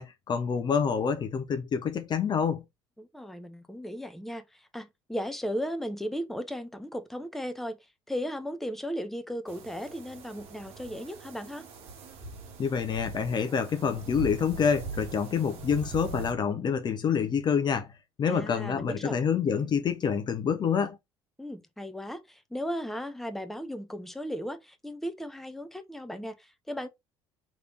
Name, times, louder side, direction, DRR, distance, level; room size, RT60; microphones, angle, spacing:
voice 1, 0.0-2.6 12.6-17.9 18.2-21.0, left 7 dB, 35° left, 0.6 m, -27 dB
voice 2, 3.0-7.8 8.1-11.6 18.3-19.2 21.4-26.9, equal, ahead, 0.8 m, -36 dB
sound 1, 9.5-16.3, right 4 dB, 55° right, 1.1 m, -41 dB
3.3 x 3.1 x 3.8 m
figure-of-eight pair, 60°, 13 cm